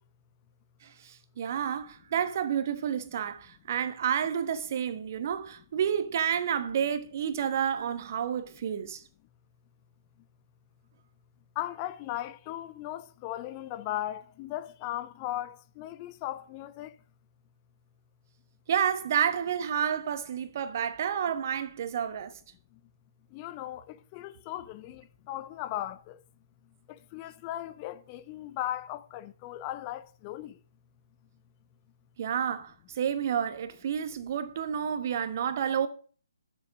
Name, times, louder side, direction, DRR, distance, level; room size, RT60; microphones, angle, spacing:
voice 1, 0.8-9.0 18.7-22.4 32.2-35.9, right 8 dB, 40° right, 1.2 m, -30 dB
voice 2, 11.6-16.9 23.3-26.2 26.9-30.6, left 14 dB, 25° left, 0.4 m, -37 dB
9.3 x 7.2 x 6.2 m
figure-of-eight pair, 140°, 2 cm